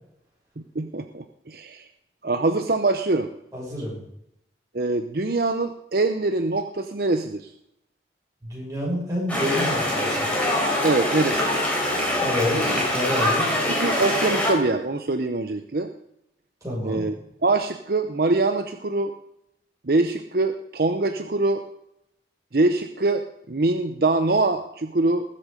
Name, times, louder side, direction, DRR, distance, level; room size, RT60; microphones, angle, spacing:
voice 1, 0.7-1.9 2.2-3.3 4.7-7.5 10.8-11.7 12.5-12.8 13.8-15.9 16.8-17.1 17.4-19.1 19.8-21.6 22.5-25.2, right 2 dB, 55° right, 7 dB, 0.8 m, -24 dB
voice 2, 3.5-4.0 8.4-10.3 12.2-13.5 16.6-17.1, left 1 dB, 20° right, -5 dB, 6.8 m, -28 dB
sound 1, 9.3-14.5, left 1 dB, 5° left, 4.0 m, -24 dB
20.0 x 7.5 x 5.2 m, 0.79 s
head